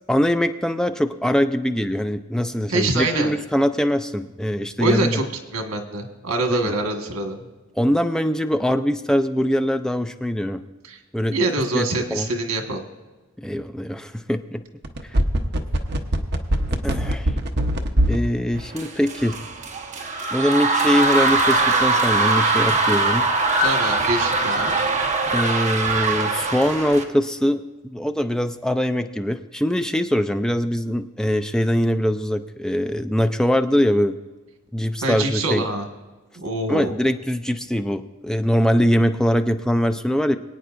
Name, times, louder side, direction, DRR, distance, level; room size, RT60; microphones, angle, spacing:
voice 1, 0.1-5.2 6.5-6.7 7.8-10.6 11.1-11.4 11.7-12.3 13.4-14.6 15.0-15.2 16.8-17.3 18.1-19.4 20.3-23.3 25.3-34.2 34.7-35.7 36.7-40.4, equal, 5° left, 8 dB, 0.3 m, -22 dB
voice 2, 2.7-3.3 4.8-5.2 5.5-7.5 10.8-11.0 11.3-12.8 23.6-24.7 35.0-35.9 36.4-36.9, right 2 dB, 90° right, 4 dB, 1.5 m, -24 dB
sound 1, 14.8-18.3 18.6-18.7, right 1 dB, 55° right, 0.9 m, -20 dB
sound 2, 18.7-27.0, right 3 dB, 35° right, 1.1 m, -21 dB
22.5 x 9.2 x 2.5 m, 1.2 s
head